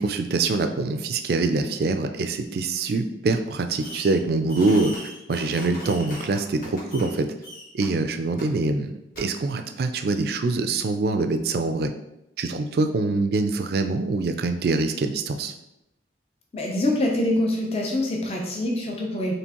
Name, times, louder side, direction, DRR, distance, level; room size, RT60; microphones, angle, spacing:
voice 1, 0.0-4.9 5.3-7.3 7.7-11.9 12.4-15.5, right 3 dB, 55° right, 7 dB, 0.4 m, -24 dB
Fireworks, 3.8-4.2 4.5-7.1 7.4-7.9 8.4-8.5 9.1-9.2, equal, 50° left, 1.2 m, -39 dB
voice 2, 16.5-19.3, left 1 dB, 35° left, 0 dB, 0.6 m, -25 dB
4.4 x 3.2 x 2.9 m, 0.86 s
head